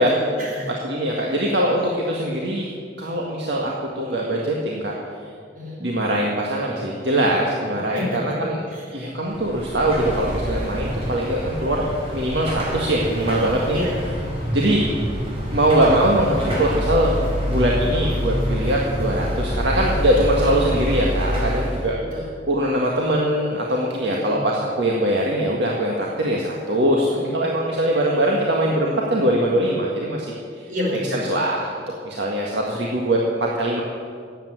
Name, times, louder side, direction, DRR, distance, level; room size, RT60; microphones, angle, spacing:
voice 1, 0.0-0.7 5.6-5.9 7.9-8.4 8.7-9.0 9.9-10.3 13.7-14.0 20.4-20.7 22.0-22.3 24.0-24.4 27.1-27.4 30.7-31.3, left 1 dB, 50° right, -3 dB, 5.1 m, -30 dB
voice 2, 0.7-2.7 3.0-5.0 5.8-8.7 8.9-11.9 12.1-13.8 14.5-14.9 15.5-17.2 17.5-22.0 22.5-27.1 27.3-30.3 30.6-30.7 31.1-33.8, right 1 dB, 70° right, -2 dB, 1.8 m, -22 dB
Car passing by / Traffic noise roadway noise / Engine, 9.2-21.9, equal, 35° right, 4.5 m, -26 dB
14.0 x 8.9 x 9.4 m, 2.1 s
head